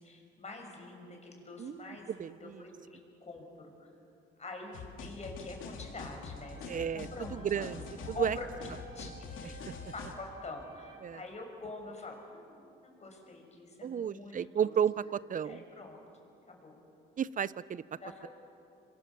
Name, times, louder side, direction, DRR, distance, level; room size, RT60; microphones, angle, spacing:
voice 1, 0.0-3.5 3.8-3.9 4.4-7.8 8.1-8.5 8.9-9.7 9.9-14.7 15.4-16.0 16.5-16.8 18.0-18.3, left 3 dB, 35° left, 2 dB, 6.1 m, -46 dB
voice 2, 2.2-2.6 6.7-7.8 8.2-8.4 11.0-11.2 13.8-15.6 17.2-17.8, right 8 dB, 40° right, 19 dB, 0.6 m, -32 dB
sound 1, 4.7-10.1, left 4 dB, 80° left, 2.7 m, -45 dB
sound 2, 6.3-11.3, right 3 dB, 65° right, 6.2 m, -54 dB
27.0 x 22.5 x 7.1 m, 2.6 s
cardioid pair, 90°, 20 cm